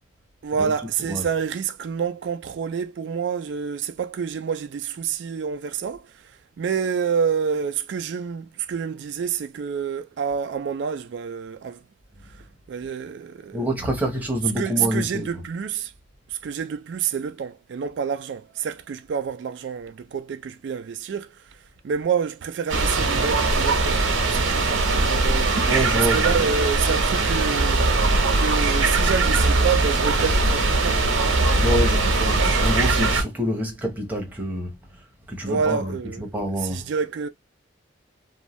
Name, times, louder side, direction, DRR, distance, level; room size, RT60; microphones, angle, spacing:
voice 1, 0.4-6.3 6.6-11.8 12.3-13.7 14.6-15.9 16.3-21.6 21.8-25.7 25.9-31.1 35.4-36.3 36.6-37.3, right 6 dB, 60° right, 0.3 m, -28 dB
voice 2, 13.5-15.4 25.7-26.4 31.6-34.8 35.3-36.8, equal, 10° right, 0.8 m, -27 dB
sound 1, 22.7-33.2, right 3 dB, 85° right, 0.8 m, -20 dB
2.6 x 2.2 x 3.0 m
head